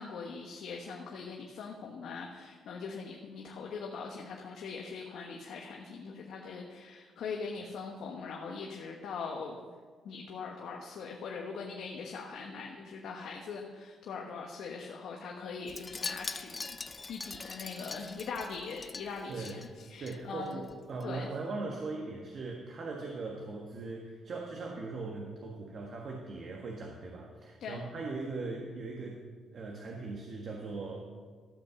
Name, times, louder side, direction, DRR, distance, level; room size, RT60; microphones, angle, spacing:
voice 1, 0.0-9.7 10.0-16.8 17.1-20.6 21.0-21.3 27.6-27.8, left 5 dB, 70° left, 1 dB, 1.1 m, -41 dB
Wind chime, 15.7-20.2 20.5-20.7 21.0-21.1, left 3 dB, 25° left, 0.5 m, -42 dB
voice 2, 19.3-19.6 20.0-29.2 29.5-31.0, right 3 dB, 55° right, 0 dB, 1.5 m, -39 dB
13.5 x 5.5 x 6.9 m, 1.5 s
cardioid pair, 90°, 0 cm